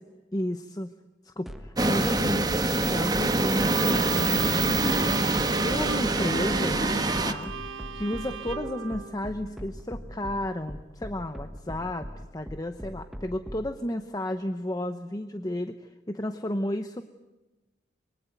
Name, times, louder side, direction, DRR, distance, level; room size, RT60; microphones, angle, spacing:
voice 1, 0.3-0.9 1.2-4.6 5.6-7.5 7.9-12.1 12.3-17.0, left 1 dB, 20° left, 8 dB, 0.9 m, -32 dB
sound 1, 1.5-13.7, equal, ahead, 1.3 m, -40 dB
sound 2, 1.8-7.3, right 2 dB, 20° right, 1.2 m, -25 dB
Bowed string instrument, 3.6-9.9, right 4 dB, 90° right, 1.3 m, -37 dB
25.5 x 23.0 x 9.1 m, 1.1 s
head